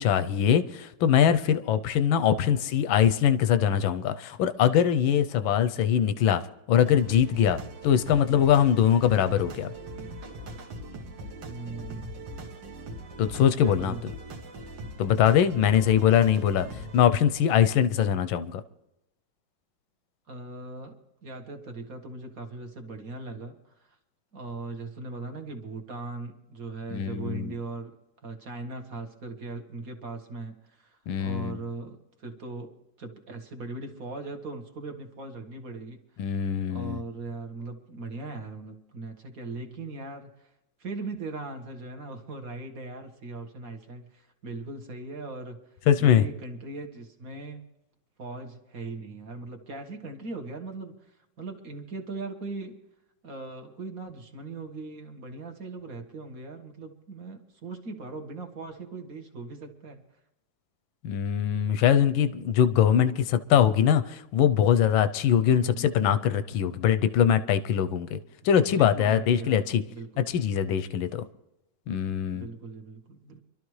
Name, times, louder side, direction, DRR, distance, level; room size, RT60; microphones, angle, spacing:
voice 1, 0.0-6.4 6.7-7.6 7.8-9.7 13.2-13.9 15.0-16.7 16.9-18.6 26.9-27.5 31.1-31.6 36.2-37.0 45.9-46.2 61.0-68.2 68.4-69.8 70.3-71.2 71.9-72.5, left 9 dB, 85° left, 11 dB, 1.5 m, -22 dB
sound 1, 6.8-17.0, right 1 dB, 70° right, 2.0 m, -41 dB
voice 2, 11.5-12.2 13.5-14.0 20.3-20.9 21.2-24.0 24.3-27.9 28.2-32.7 33.0-40.5 40.8-45.6 46.0-47.6 48.2-52.8 53.2-60.0 65.4-66.0 68.7-70.3 72.3-73.4, right 3 dB, 50° right, 5 dB, 1.8 m, -39 dB
25.0 x 12.5 x 3.2 m, 0.88 s
omnidirectional pair, 2.1 m